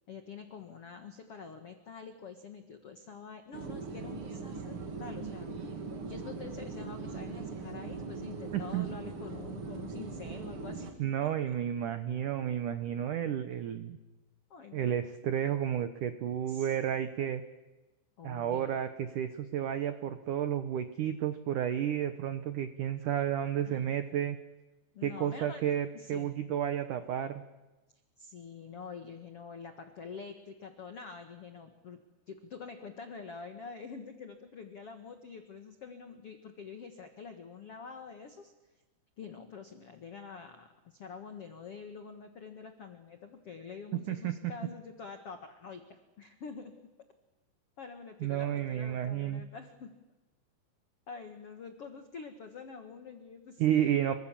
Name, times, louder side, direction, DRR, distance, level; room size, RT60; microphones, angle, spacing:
voice 1, 0.1-11.5 14.5-15.0 16.5-16.7 18.2-18.7 23.7-23.8 24.9-25.7 25.9-26.3 28.2-32.0 32.3-38.5 39.2-46.7 47.8-49.9 51.1-53.6, left 5 dB, 70° left, 7 dB, 1.3 m, -46 dB
sound 1, 3.5-10.9, right 4 dB, 40° right, 2.1 m, -40 dB
voice 2, 8.5-8.9 11.0-14.0 14.7-17.4 18.2-24.4 25.0-27.4 44.1-44.3 48.2-49.4 53.6-54.1, right 10 dB, 85° right, 10 dB, 1.8 m, -31 dB
29.5 x 24.5 x 7.4 m, 1.1 s
omnidirectional pair, 5.3 m